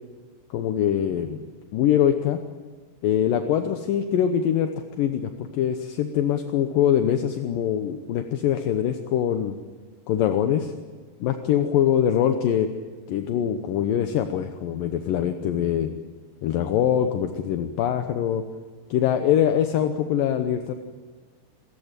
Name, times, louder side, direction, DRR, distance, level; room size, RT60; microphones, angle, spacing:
voice 1, 0.5-1.4 1.7-2.4 3.0-4.7 5.0-9.6 10.1-10.7 11.2-12.7 13.1-15.9 16.4-18.4 18.9-20.7, left 9 dB, 75° left, 7 dB, 2.1 m, -23 dB
28.0 x 15.0 x 8.9 m, 1.4 s
omnidirectional pair, 5.0 m